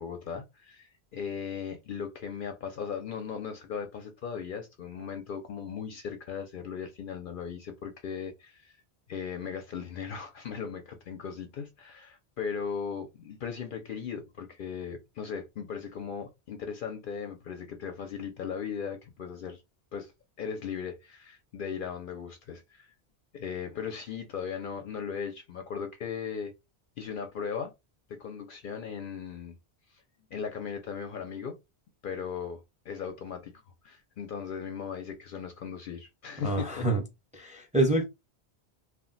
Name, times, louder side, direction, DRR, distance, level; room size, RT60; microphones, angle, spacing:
voice 1, 0.0-8.8 9.1-19.6 19.9-20.1 20.4-22.9 23.3-26.5 27.0-27.7 28.1-29.6 30.3-31.6 32.0-33.5 33.8-36.9, left 6 dB, 60° left, 0.6 m, -37 dB
voice 2, 36.4-37.0 37.3-38.0, right 2 dB, 10° right, 0.5 m, -26 dB
2.3 x 2.1 x 3.8 m
omnidirectional pair, 1.1 m